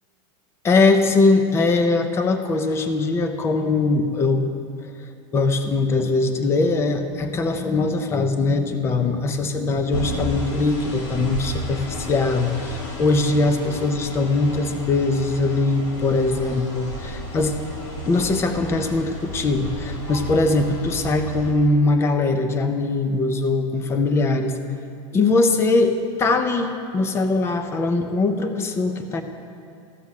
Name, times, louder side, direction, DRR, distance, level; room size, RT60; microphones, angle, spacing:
voice 1, 0.6-4.5 5.3-17.6 18.1-24.5 25.1-29.2, left 3 dB, 15° left, 8 dB, 0.6 m, -21 dB
sound 1, 9.9-21.5, equal, 65° left, 2.2 m, -33 dB
14.0 x 7.0 x 6.5 m, 2.6 s
supercardioid pair, 160°, 16 cm